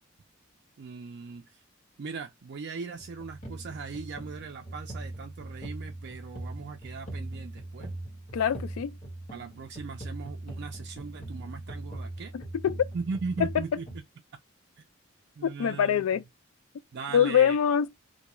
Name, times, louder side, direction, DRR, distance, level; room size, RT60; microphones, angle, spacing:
voice 1, 0.8-1.4 2.0-8.0 9.3-12.3 12.9-13.9 15.4-16.1 16.9-17.6, right 4 dB, 55° right, 0.4 m, -39 dB
sound 1, 3.0-14.0, right 1 dB, 40° left, 1.1 m, -40 dB
voice 2, 8.3-9.0 12.3-12.8 13.4-13.6 15.4-16.2 17.1-17.9, left 8 dB, 85° left, 0.3 m, -24 dB
2.3 x 2.2 x 2.9 m
head